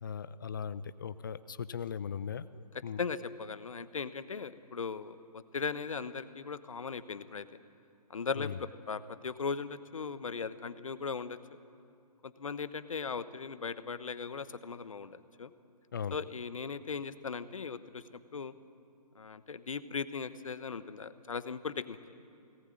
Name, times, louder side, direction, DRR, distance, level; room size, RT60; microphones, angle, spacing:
voice 1, 0.0-3.0 8.4-8.6 15.9-16.2, left 7 dB, 30° left, 16 dB, 0.6 m, -38 dB
voice 2, 3.0-7.5 8.1-11.4 12.2-15.5 16.1-18.0 18.3-18.5 19.1-22.0, left 5 dB, 50° left, 13 dB, 1.1 m, -38 dB
24.0 x 18.5 x 9.0 m, 2.5 s
figure-of-eight pair, 145°, 21 cm